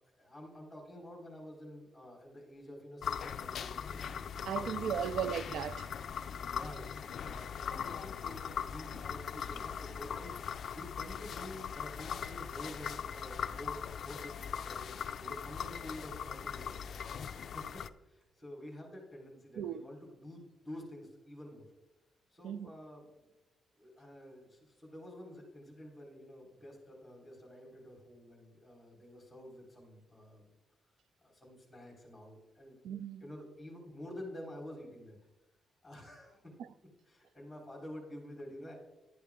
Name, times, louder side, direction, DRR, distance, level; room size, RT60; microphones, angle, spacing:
voice 1, 0.2-4.1 4.5-5.1 6.4-14.4 14.6-21.7 22.3-23.3 23.7-30.5 31.2-32.8 33.2-35.2 35.8-36.5 37.0-38.8, left 1 dB, 10° left, 3.8 m, -49 dB
sound 1, 3.0-17.9, left 7 dB, 55° left, 0.4 m, -40 dB
voice 2, 4.5-5.9 19.6-19.8 22.4-22.7 32.8-33.2, right 9 dB, 80° right, 0.4 m, -36 dB
11.5 x 9.3 x 3.6 m
cardioid pair, 145°, 0 cm